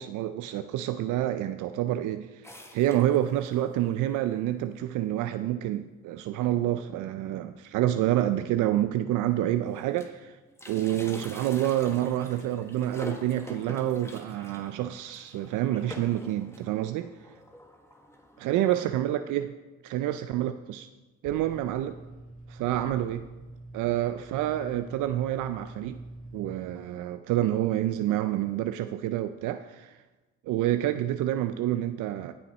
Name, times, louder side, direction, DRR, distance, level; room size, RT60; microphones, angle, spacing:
voice 1, 0.0-10.4 10.7-17.1 18.4-19.5 19.8-20.9 21.2-22.0 22.5-23.3 23.7-26.0 26.3-30.0 30.4-32.3, right 13 dB, 85° right, 10 dB, 0.5 m, -28 dB
sound 1, 2.4-3.6 4.2-4.3 4.4-4.5 5.4-5.5 5.9-6.1 6.4-6.5 7.8-7.9 8.6-8.7 9.0-10.2 10.5-18.9, left 1 dB, 10° left, 1.3 m, -47 dB
sound 2, 21.2-26.5, right 2 dB, 25° left, 1.7 m, -45 dB
16.5 x 5.7 x 4.2 m, 1.2 s
cardioid pair, 90°, 30 cm